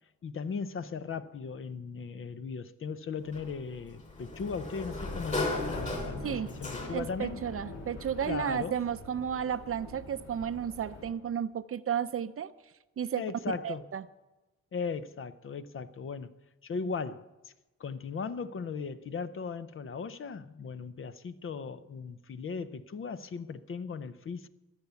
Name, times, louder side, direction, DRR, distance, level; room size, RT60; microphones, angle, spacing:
voice 1, 0.2-7.4 8.3-8.8 13.2-13.9 14.7-16.3 16.6-17.5 17.8-24.5, left 5 dB, 45° left, 0.7 m, -37 dB
Sliding door, 3.3-7.3, left 2 dB, 25° left, 3.5 m, -36 dB
sound 1, 5.0-11.1, left 2 dB, 60° left, 2.7 m, -44 dB
voice 2, 6.9-12.5 13.0-13.2 13.6-14.0, right 8 dB, 50° right, 0.6 m, -33 dB
23.5 x 8.2 x 7.0 m
wide cardioid pair, 155°, 30 cm